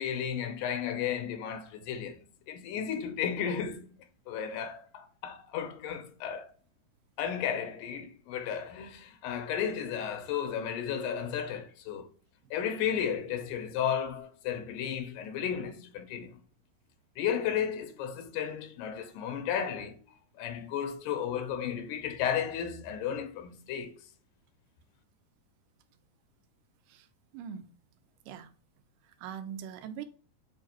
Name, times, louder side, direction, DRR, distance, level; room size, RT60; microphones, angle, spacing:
voice 1, 0.0-2.2 2.5-3.9 4.3-6.5 7.2-12.1 12.5-16.4 17.2-20.1 20.4-24.1, left 8 dB, 80° left, 2.2 m, -33 dB
voice 2, 26.9-27.7 28.2-28.5 29.0-30.1, right 8 dB, 90° right, 2.3 m, -42 dB
6.5 x 2.7 x 2.9 m
omnidirectional pair, 3.8 m